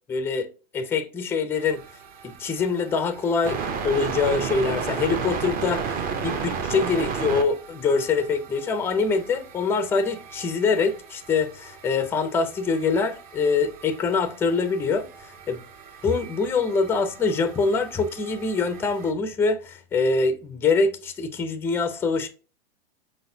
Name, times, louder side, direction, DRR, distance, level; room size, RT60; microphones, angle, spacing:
voice 1, 0.1-0.5 0.7-1.8 2.2-3.6 3.8-15.6 16.0-22.3, left 4 dB, 10° left, 0.4 m, -24 dB
sound 1, 1.5-19.1, right 6 dB, 30° right, 0.6 m, -35 dB
5.0 x 3.9 x 2.6 m
hypercardioid pair, 120°, 31 cm